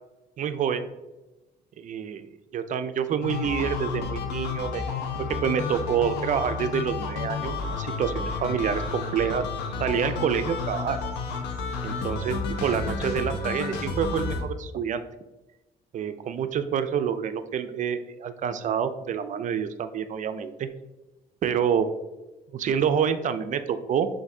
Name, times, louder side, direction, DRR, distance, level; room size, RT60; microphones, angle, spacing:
voice 1, 0.4-0.8 1.8-2.3 2.5-4.8 5.3-9.5 9.8-11.0 11.8-15.0 15.9-20.7 21.4-21.9 22.5-24.1, right 8 dB, 50° right, 11 dB, 0.4 m, -27 dB
sound 1, 3.2-14.4, left 4 dB, 90° left, 0.7 m, -31 dB
5.8 x 2.6 x 2.7 m, 1.1 s
cardioid pair, 90°, 17 cm